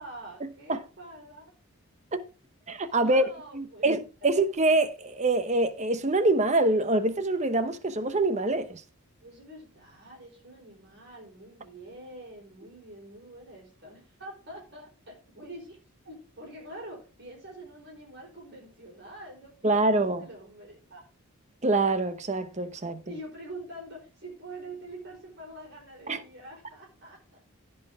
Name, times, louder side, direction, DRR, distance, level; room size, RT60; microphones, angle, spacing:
voice 1, 0.0-1.5 2.8-3.9 9.2-15.8 16.0-19.9 20.2-21.1 23.0-27.4, right 1 dB, 50° right, 4.5 m, -45 dB
voice 2, 2.7-8.8 19.6-20.3 21.6-23.0 26.1-26.2, right 2 dB, 30° right, 0.9 m, -25 dB
16.5 x 5.7 x 3.5 m
head